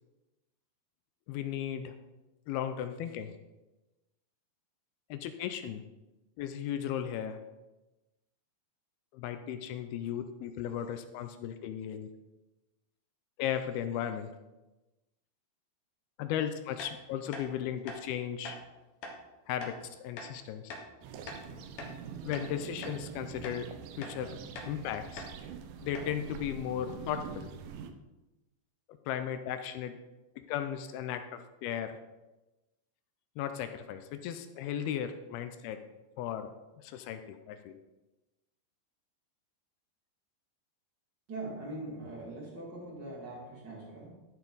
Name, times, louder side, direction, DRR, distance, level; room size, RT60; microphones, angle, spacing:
voice 1, 1.3-2.0 2.5-3.3 5.1-5.8 6.4-7.4 9.1-12.1 13.4-14.3 16.2-18.6 19.5-20.7 22.3-23.7 24.0-24.4 24.7-25.2 25.8-27.5 29.1-30.0 30.4-32.0 33.4-35.8 36.2-36.5 36.8-37.8, left 10 dB, 80° left, 8 dB, 2.3 m, -36 dB
sound 1, 16.8-16.9 17.3-17.5 17.8-18.0 18.4-18.6 19.0-19.2 19.6-19.7 20.2-20.3 20.7-20.9 21.3-22.0 22.3-22.5 22.8-23.0 23.4-23.6 24.0-24.2 24.5-24.7 25.2-25.3 25.6-25.7 25.9-26.1, left 2 dB, 60° left, 2.0 m, -43 dB
sound 2, 21.0-27.9, right 7 dB, 80° right, 2.0 m, -44 dB
voice 2, 41.3-44.1, right 2 dB, 30° right, -4 dB, 2.6 m, -42 dB
13.0 x 7.1 x 4.0 m, 1.1 s
omnidirectional pair, 4.9 m